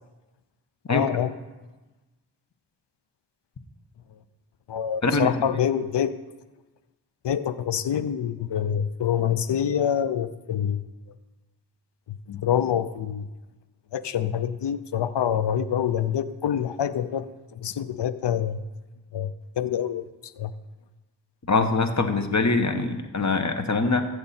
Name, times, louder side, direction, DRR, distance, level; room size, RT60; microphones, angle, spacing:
voice 1, 0.9-1.3 4.7-6.1 7.2-10.9 12.1-13.3 13.9-17.3 17.5-18.6 19.1-20.5, left 9 dB, 85° left, 14 dB, 0.6 m, -26 dB
voice 2, 5.0-5.3 21.5-24.1, left 3 dB, 45° left, 7 dB, 1.1 m, -23 dB
15.0 x 6.7 x 4.3 m, 1.2 s
cardioid pair, 50°, 41 cm